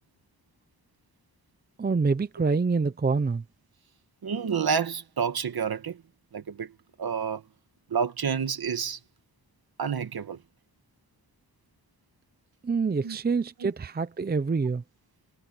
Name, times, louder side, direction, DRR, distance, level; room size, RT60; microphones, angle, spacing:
voice 1, 1.8-3.4 12.6-14.8, right 4 dB, 25° right, 0.6 m, -26 dB
voice 2, 4.2-6.0 6.3-6.7 7.0-7.4 7.9-9.0 9.8-10.4 13.0-13.2 13.6-13.7, right 6 dB, 65° right, 1.9 m, -29 dB
wide cardioid pair, 115°, 40 cm